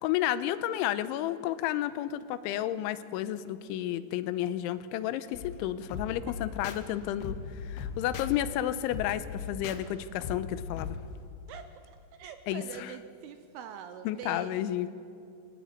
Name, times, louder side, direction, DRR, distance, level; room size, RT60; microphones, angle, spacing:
voice 1, 0.0-7.4 7.6-11.0 12.5-12.9 14.1-14.9, left 12 dB, 85° left, 13 dB, 3.2 m, -31 dB
sound 1, 5.3-11.0, left 6 dB, 70° left, 3.0 m, -39 dB
voice 2, 11.5-14.8, right 8 dB, 80° right, 8 dB, 2.5 m, -44 dB
24.0 x 16.0 x 9.3 m, 2.4 s
omnidirectional pair, 5.4 m